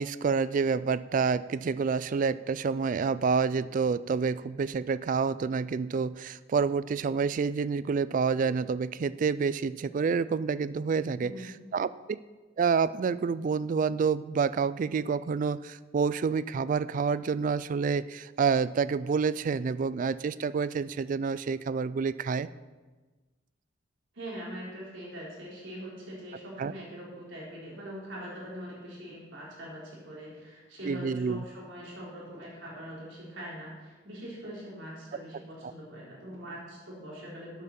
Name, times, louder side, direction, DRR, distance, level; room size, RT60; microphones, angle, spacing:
voice 1, 0.0-12.2 12.6-22.5 26.6-26.7 30.8-31.4, right 5 dB, 45° right, 17 dB, 0.3 m, -28 dB
voice 2, 11.2-11.6 24.1-37.6, equal, 75° right, -5 dB, 4.0 m, -42 dB
12.5 x 8.4 x 4.3 m, 1.3 s
head